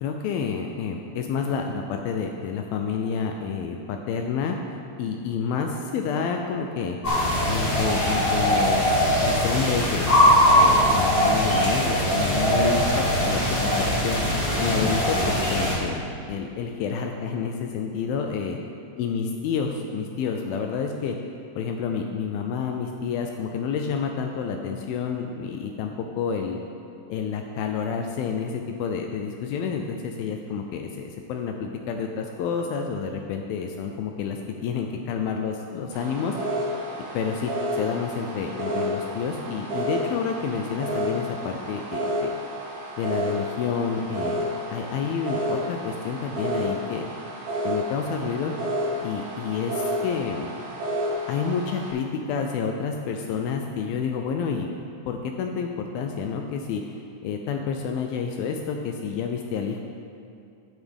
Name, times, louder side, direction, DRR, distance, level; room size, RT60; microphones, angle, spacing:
voice 1, 0.0-4.6 5.0-7.0 7.5-10.1 10.6-14.2 14.6-16.0 16.3-18.6 19.0-21.2 21.6-26.6 27.1-36.4 37.1-42.3 43.0-44.4 44.7-47.1 47.7-48.5 49.0-50.5 51.3-54.7 55.1-56.8 57.2-59.8, left 6 dB, 80° left, 3 dB, 2.2 m, -29 dB
sound 1, 7.0-15.8, equal, 55° left, 0.6 m, -21 dB
sound 2, 35.9-51.9, equal, 50° right, 4.0 m, -31 dB
11.5 x 9.4 x 3.5 m, 2.5 s
omnidirectional pair, 4.6 m